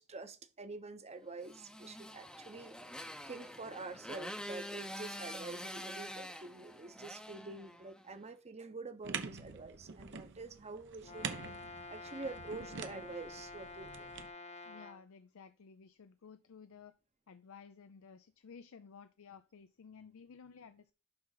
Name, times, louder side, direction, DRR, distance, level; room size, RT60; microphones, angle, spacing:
voice 1, 0.0-2.7 3.3-11.3 11.7-14.1, right 3 dB, 30° right, 0.9 m, -47 dB
Motorcycle, 1.4-8.1, equal, 5° left, 0.7 m, -46 dB
sound 1, 9.0-14.3, right 6 dB, 55° right, 0.8 m, -45 dB
Brass instrument, 11.0-15.0, left 3 dB, 30° left, 0.9 m, -49 dB
voice 2, 14.6-16.9 17.3-20.9, left 6 dB, 70° left, 0.5 m, -55 dB
11.5 x 3.9 x 4.0 m
head